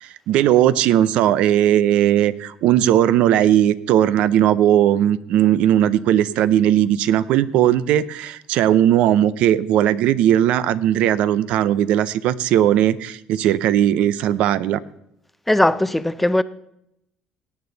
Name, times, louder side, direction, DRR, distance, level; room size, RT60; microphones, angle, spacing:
voice 1, 0.0-14.8, right 11 dB, 70° right, 0.6 m, -18 dB
voice 2, 15.5-16.4, left 1 dB, 5° left, 0.6 m, -18 dB
18.0 x 8.8 x 4.0 m
cardioid pair, 110°, 2 cm